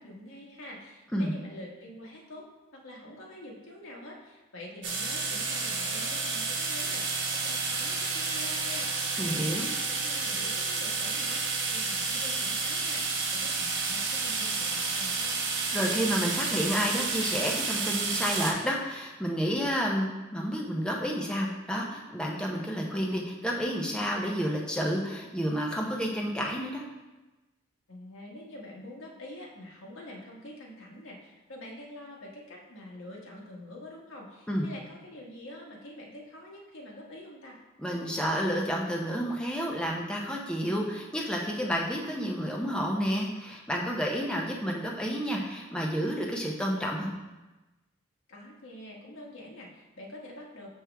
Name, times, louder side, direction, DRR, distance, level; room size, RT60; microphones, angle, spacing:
voice 1, 0.0-2.4 2.7-15.4 27.9-37.6 48.3-50.7, left 1 dB, 75° left, -3 dB, 1.5 m, -46 dB
sound 1, 4.8-18.5, right 4 dB, 60° right, 1.1 m, -30 dB
voice 2, 9.2-9.7 15.7-26.8 34.5-34.7 37.8-47.1, equal, 5° left, -2 dB, 0.7 m, -30 dB
6.2 x 6.0 x 3.4 m, 1.1 s
head